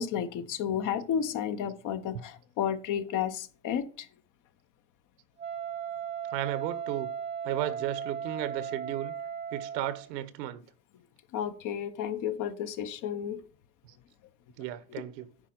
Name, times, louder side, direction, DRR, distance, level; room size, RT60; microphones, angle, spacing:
voice 1, 0.0-4.1 11.3-13.4, left 8 dB, 40° left, 0.8 m, -32 dB
Wind instrument woodwind instrument, 5.4-10.1, right 8 dB, 15° right, 0.4 m, -36 dB
voice 2, 6.3-7.1 7.4-9.1 9.5-10.6 14.6-15.3, right 13 dB, 75° right, 1.2 m, -34 dB
10.0 x 4.2 x 5.9 m
supercardioid pair, 125°, 50 cm